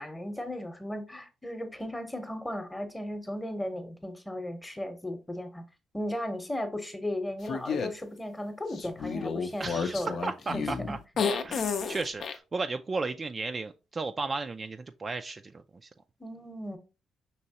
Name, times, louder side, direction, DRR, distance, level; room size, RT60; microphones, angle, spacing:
voice 1, 0.0-5.6 5.9-10.2 10.5-10.7 16.2-16.8, left 1 dB, 10° left, 0.9 m, -36 dB
sound 1, 7.5-7.9 8.8-12.4, left 5 dB, 60° left, 0.6 m, -31 dB
voice 2, 9.6-11.0 11.4-15.9, right 3 dB, 30° right, 0.3 m, -34 dB
5.5 x 3.0 x 2.8 m
cardioid pair, 90°, 0 cm